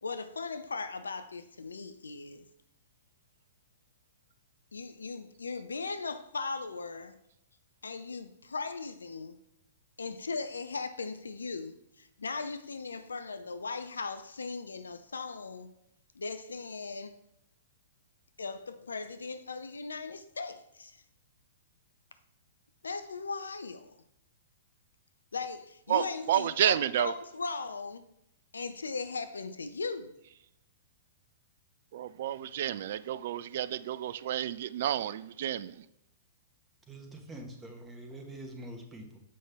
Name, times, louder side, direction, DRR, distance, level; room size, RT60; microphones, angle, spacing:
voice 1, 0.0-2.5 4.7-7.2 7.8-9.4 10.0-15.7 16.2-17.1 18.4-21.0 22.8-24.0 25.3-28.0 28.5-30.2, left 4 dB, 70° left, 0.5 m, -38 dB
voice 2, 25.9-27.1 31.9-35.8, right 11 dB, 50° right, 0.3 m, -30 dB
voice 3, 36.9-39.2, right 1 dB, 10° right, 1.2 m, -45 dB
7.6 x 5.4 x 3.5 m
figure-of-eight pair, 105°, 0 cm